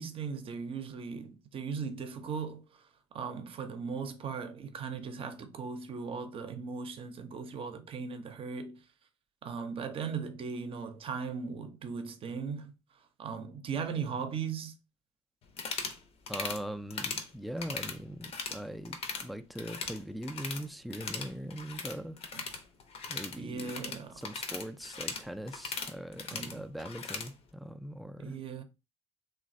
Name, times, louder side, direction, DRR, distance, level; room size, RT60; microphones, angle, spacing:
voice 1, 0.0-8.9 9.4-14.7 22.3-22.4 23.4-24.2 26.3-26.6 28.2-28.6, right 5 dB, 40° right, 0.6 m, -38 dB
sound 1, 15.5-16.0 16.3-16.6 16.9-17.3 17.6-18.6 18.8-19.3 19.5-20.6 20.9-27.3, left 5 dB, 45° left, 0.6 m, -39 dB
voice 2, 16.3-22.2 23.1-23.7 24.2-28.4, equal, ahead, 0.3 m, -41 dB
3.0 x 2.3 x 2.5 m
figure-of-eight pair, 55°, 14 cm